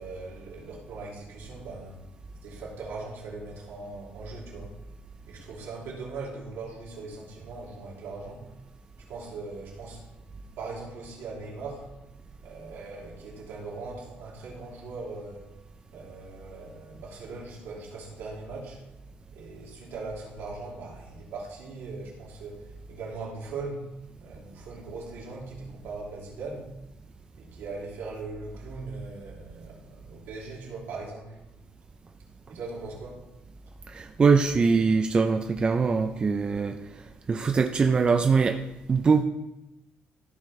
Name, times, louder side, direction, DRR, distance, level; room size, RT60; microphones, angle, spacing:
voice 1, 0.0-2.0 2.4-4.7 5.3-8.5 9.0-10.1 10.6-11.9 12.4-15.5 15.9-18.8 19.3-23.9 24.2-26.7 27.3-31.4 32.5-33.2, right 3 dB, 80° right, -3 dB, 2.7 m, -40 dB
voice 2, 33.9-36.8 37.3-38.6 38.9-39.2, right 5 dB, 25° right, 6 dB, 0.4 m, -22 dB
14.0 x 5.2 x 3.2 m, 0.94 s
cardioid pair, 145°, 4 cm